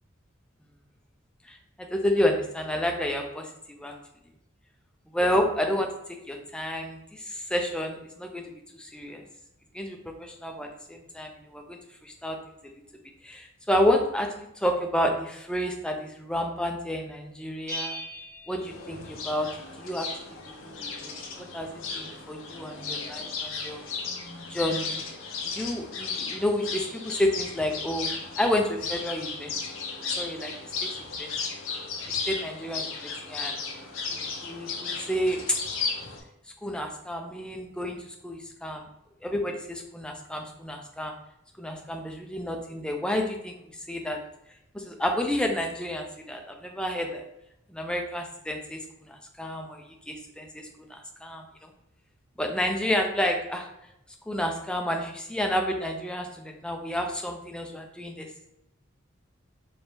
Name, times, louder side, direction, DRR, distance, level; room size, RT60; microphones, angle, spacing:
voice 1, 1.5-3.9 5.1-5.9 6.3-9.2 9.7-12.4 12.6-12.8 13.2-18.0 18.5-19.5 19.8-20.1 20.6-21.1 21.4-23.8 24.5-25.0 25.4-28.1 28.4-29.5 30.1-30.5 30.8-30.9 31.2-31.6 32.1-33.5 34.1-35.6 36.6-38.8 39.2-41.1 41.6-43.5 43.9-44.2 44.7-47.3 47.7-51.7 52.4-53.7 54.3-58.4, left 1 dB, 5° left, 3 dB, 0.5 m, -30 dB
Bell, 17.7-19.5, equal, 15° right, 0.9 m, -39 dB
sound 1, 18.6-36.2, left 4 dB, 80° left, 0.7 m, -35 dB
4.3 x 2.7 x 3.4 m, 0.81 s
head